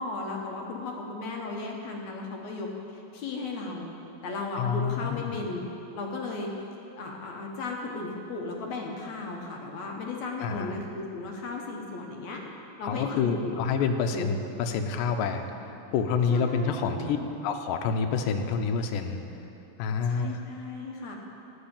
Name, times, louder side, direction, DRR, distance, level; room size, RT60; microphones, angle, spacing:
voice 1, 0.0-3.9 4.2-5.6 5.9-6.5 7.0-12.4 12.8-13.5 14.1-14.3 16.3-17.3 20.0-21.2, left 3 dB, 70° left, 0 dB, 2.1 m, -35 dB
voice 2, 4.6-5.4 10.4-10.7 12.8-17.2 17.4-19.2 19.8-20.4, left 5 dB, 85° left, 6 dB, 2.3 m, -28 dB
13.5 x 5.3 x 8.7 m, 2.9 s
omnidirectional pair, 3.9 m